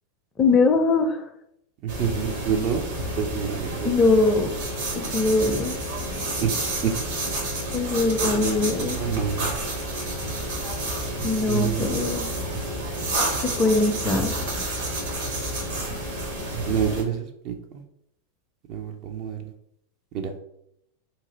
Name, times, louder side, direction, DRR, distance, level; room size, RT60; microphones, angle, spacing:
voice 1, 0.4-1.2 3.8-4.5 4.9-5.8 7.7-9.0 11.2-12.3 13.6-14.4, left 3 dB, 25° left, 6 dB, 0.5 m, -21 dB
voice 2, 1.8-2.8 3.2-3.9 6.4-6.9 8.3-9.5 11.5-12.0 16.7-17.8 18.7-19.5 20.1-20.3, right 8 dB, 40° right, 5 dB, 0.5 m, -28 dB
sound 1, 1.9-17.0, right 1 dB, 55° right, 1.2 m, -29 dB
2.9 x 2.5 x 4.0 m, 0.76 s
figure-of-eight pair, 90°, 0 cm